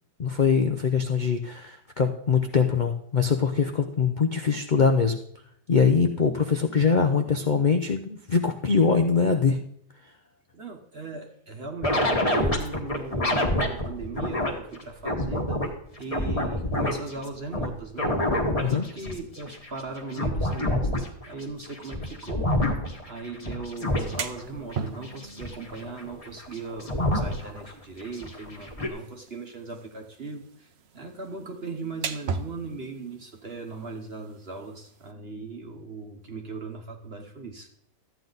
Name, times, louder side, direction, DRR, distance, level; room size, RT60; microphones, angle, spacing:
voice 1, 0.2-5.2 5.7-9.6 18.6-18.9, left 5 dB, 80° left, 6 dB, 0.4 m, -23 dB
voice 2, 10.5-15.6 16.0-18.2 18.7-22.5 23.1-37.7, right 3 dB, 40° right, 3 dB, 1.1 m, -38 dB
sound 1, 11.8-14.5 14.8-15.7 16.0-17.7 18.0-27.7 28.0-28.9, left 1 dB, 20° left, 1.4 m, -27 dB
sound 2, 23.8-35.1, right 5 dB, 60° right, 0.7 m, -40 dB
13.5 x 9.1 x 4.0 m, 0.68 s
omnidirectional pair, 1.8 m